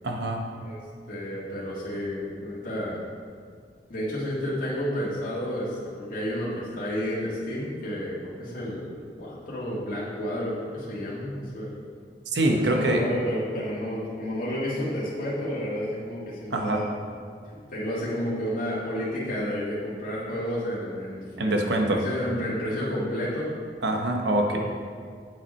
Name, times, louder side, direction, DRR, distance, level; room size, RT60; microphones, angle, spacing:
voice 1, 0.0-0.5 12.3-13.0 16.5-16.8 21.4-22.0 23.8-24.6, right 1 dB, 70° right, 2 dB, 1.0 m, -24 dB
voice 2, 1.1-3.0 3.9-11.8 12.4-16.9 17.7-23.5 24.5-24.6, equal, 50° left, -8 dB, 1.9 m, -31 dB
8.2 x 7.6 x 4.3 m, 2.1 s
head